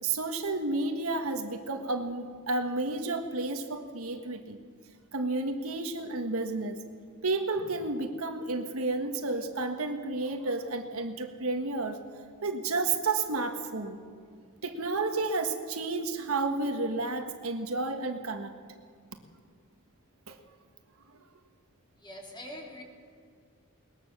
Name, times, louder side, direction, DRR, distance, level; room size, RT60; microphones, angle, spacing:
voice 1, 0.0-4.6 5.1-6.8 7.2-12.0 12.4-14.0 14.6-18.6 20.3-20.4, right 3 dB, 85° right, 1.6 m, -31 dB
voice 2, 22.0-22.8, left 1 dB, 20° left, 3.4 m, -43 dB
21.0 x 20.0 x 6.8 m
head